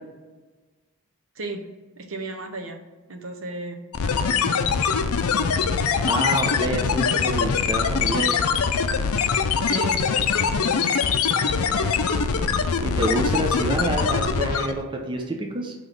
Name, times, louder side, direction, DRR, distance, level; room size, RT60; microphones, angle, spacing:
voice 1, 2.0-2.8 3.1-5.0 9.7-10.0 10.3-10.8, right 2 dB, 65° right, 5 dB, 0.8 m, -35 dB
sound 1, 3.9-14.8, left 6 dB, 85° left, 0.5 m, -23 dB
voice 2, 6.0-8.5 12.8-15.7, right 1 dB, 20° right, 2 dB, 0.6 m, -27 dB
5.9 x 3.1 x 5.2 m, 1.3 s
head